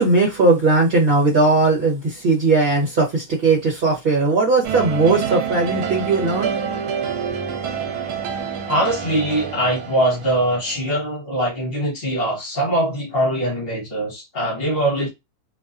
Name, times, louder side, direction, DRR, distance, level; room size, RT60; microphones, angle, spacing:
voice 1, 0.0-6.5, right 3 dB, 40° right, 1.1 m, -18 dB
sound 1, 4.6-10.9, right 7 dB, 80° right, 1.1 m, -27 dB
voice 2, 8.7-15.1, right 1 dB, 40° left, 1.2 m, -22 dB
2.7 x 2.1 x 2.5 m
omnidirectional pair, 1.7 m